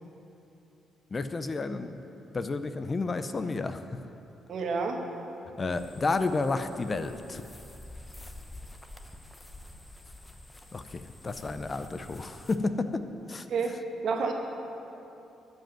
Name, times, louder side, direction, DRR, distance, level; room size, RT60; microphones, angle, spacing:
voice 1, 1.1-1.9 2.3-3.8 5.6-7.4 10.7-13.5, left 3 dB, 30° left, 10 dB, 0.6 m, -31 dB
voice 2, 4.5-5.0 13.5-13.7 14.0-14.3, right 5 dB, 65° right, 3 dB, 1.3 m, -29 dB
sound 1, 5.7-12.6, left 1 dB, 15° left, 0.9 m, -48 dB
13.0 x 5.3 x 8.9 m, 2.9 s
cardioid pair, 90°, 0 cm